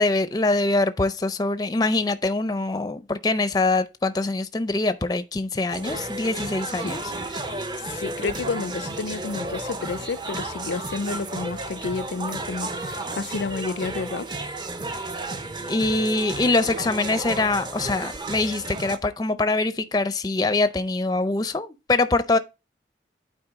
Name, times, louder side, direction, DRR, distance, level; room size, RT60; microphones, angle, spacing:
voice 1, 0.0-7.0 15.7-22.4, left 2 dB, 20° left, 0.4 m, -24 dB
sound 1, 5.7-19.0, right 2 dB, 25° right, 0.6 m, -33 dB
voice 2, 7.8-14.3, left 4 dB, 80° left, 0.4 m, -30 dB
8.9 x 4.4 x 3.5 m
head